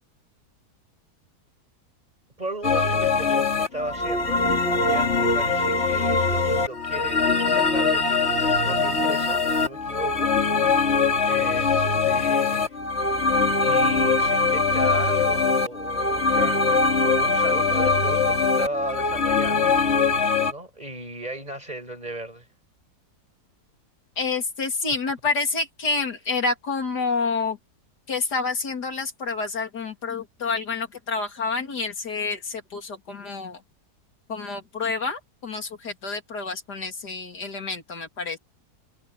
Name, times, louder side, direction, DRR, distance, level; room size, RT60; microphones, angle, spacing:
voice 1, 2.4-4.4 4.8-10.3 11.3-12.8 13.6-19.7 20.5-22.5, right 1 dB, 25° right, 6.5 m, -35 dB
sound 1, 2.6-20.5, left 4 dB, 40° left, 2.8 m, -22 dB
voice 2, 24.2-27.6 28.1-33.6 34.3-38.4, left 4 dB, 85° left, 3.4 m, -28 dB
omnidirectional pair, 1.7 m